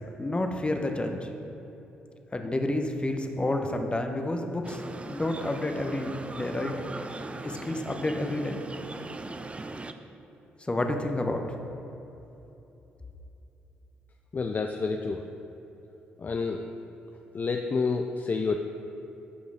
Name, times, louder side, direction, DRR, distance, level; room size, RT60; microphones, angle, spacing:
voice 1, 0.2-1.3 2.3-4.8 5.1-6.7 7.4-8.6 10.7-11.5, left 1 dB, 20° left, 4 dB, 0.9 m, -29 dB
sound 1, 4.6-9.9, right 2 dB, 25° right, 0.5 m, -40 dB
voice 2, 14.3-15.2 16.2-16.7 17.3-18.6, left 4 dB, 40° left, 4 dB, 0.4 m, -29 dB
11.5 x 5.1 x 3.5 m, 3.0 s
hypercardioid pair, 45°, 5 cm